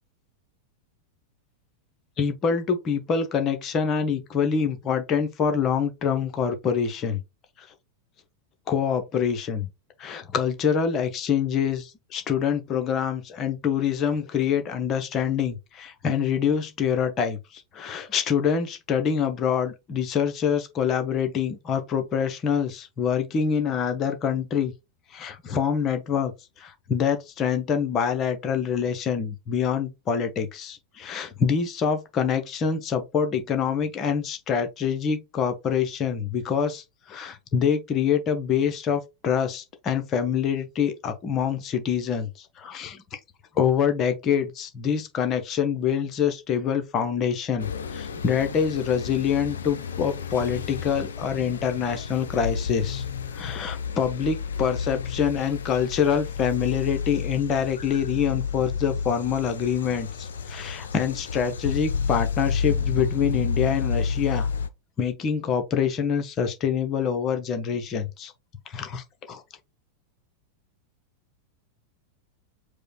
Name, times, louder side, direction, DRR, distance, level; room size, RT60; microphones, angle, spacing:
voice 1, 2.2-7.2 7.6-7.7 8.7-9.7 10.0-24.7 25.1-26.3 26.6-43.2 43.5-53.0 53.3-64.5 65.0-68.3 68.7-69.4, left 7 dB, 30° left, 0.9 m, -26 dB
sound 1, 47.6-64.7, left 6 dB, 65° left, 0.5 m, -31 dB
4.9 x 2.2 x 4.2 m
figure-of-eight pair, 90°, 0 cm